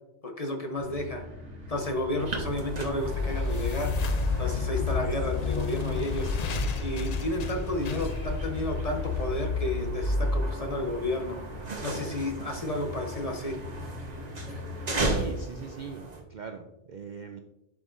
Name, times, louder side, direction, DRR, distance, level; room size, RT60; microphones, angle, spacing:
voice 1, 0.2-1.2 1.7-3.9 4.4-6.3 6.8-11.4 11.8-13.6 14.5-14.6, left 1 dB, 35° left, 3 dB, 0.8 m, -32 dB
sound 1, 0.8-15.0, left 1 dB, 70° right, 1.5 m, -43 dB
sound 2, 2.2-16.2, right 2 dB, 40° right, 1.0 m, -37 dB
sound 3, 2.4-11.5, left 3 dB, 55° left, 0.4 m, -30 dB
voice 2, 14.9-17.4, right 6 dB, 55° right, 5 dB, 0.5 m, -41 dB
11.0 x 4.8 x 2.6 m, 0.89 s
omnidirectional pair, 1.2 m